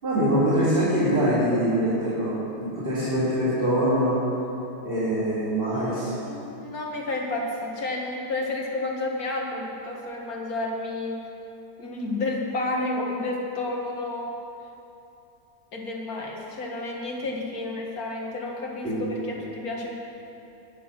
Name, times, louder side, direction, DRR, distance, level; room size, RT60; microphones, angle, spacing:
voice 1, 0.0-4.2 4.8-6.1 18.8-19.1, equal, 30° right, -12 dB, 4.1 m, -24 dB
voice 2, 5.7-11.2 11.8-14.3 15.7-18.9 19.3-19.9, left 2 dB, 60° left, -1 dB, 2.2 m, -31 dB
21.0 x 7.1 x 6.1 m, 2.9 s
omnidirectional pair, 1.8 m